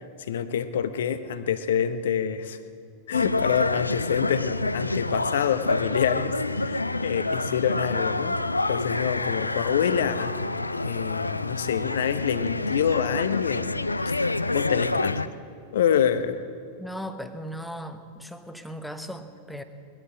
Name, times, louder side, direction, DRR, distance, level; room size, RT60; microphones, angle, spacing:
voice 1, 0.3-2.6 3.1-8.4 8.7-10.3 10.8-13.7 14.1-14.2 14.5-15.2 15.7-16.4, left 8 dB, 60° left, 12 dB, 0.8 m, -26 dB
sound 1, 3.1-15.3, left 2 dB, 80° left, 0.4 m, -28 dB
voice 2, 16.8-19.6, equal, ahead, 8 dB, 1.0 m, -37 dB
20.5 x 12.5 x 5.1 m, 2.5 s
figure-of-eight pair, 90°, 0 cm